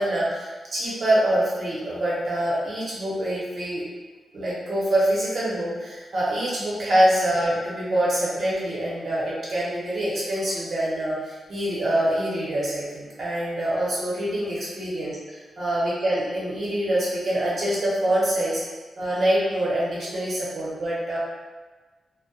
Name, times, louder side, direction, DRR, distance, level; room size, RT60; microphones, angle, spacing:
voice 1, 0.0-3.8 4.3-18.6 19.0-21.2, right 1 dB, 45° right, -7 dB, 0.8 m, -25 dB
2.2 x 2.0 x 2.7 m, 1.3 s
wide cardioid pair, 150°, 0 cm